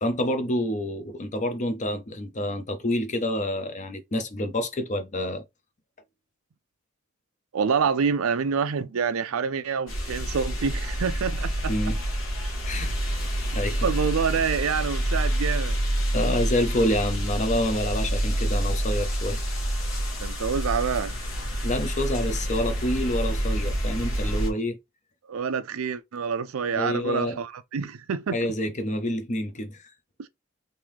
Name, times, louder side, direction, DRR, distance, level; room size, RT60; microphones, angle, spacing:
voice 1, 0.0-5.4 11.7-12.0 12.6-13.2 13.5-13.8 16.1-19.4 21.6-24.8 26.7-27.4 28.3-29.9, left 1 dB, 35° left, 0.6 m, -28 dB
voice 2, 7.5-11.7 13.8-15.8 20.2-21.1 25.3-28.4 30.2-30.3, right 6 dB, 75° right, 0.5 m, -27 dB
sound 1, 9.9-24.5, right 1 dB, 70° left, 1.3 m, -27 dB
3.6 x 2.7 x 3.0 m
head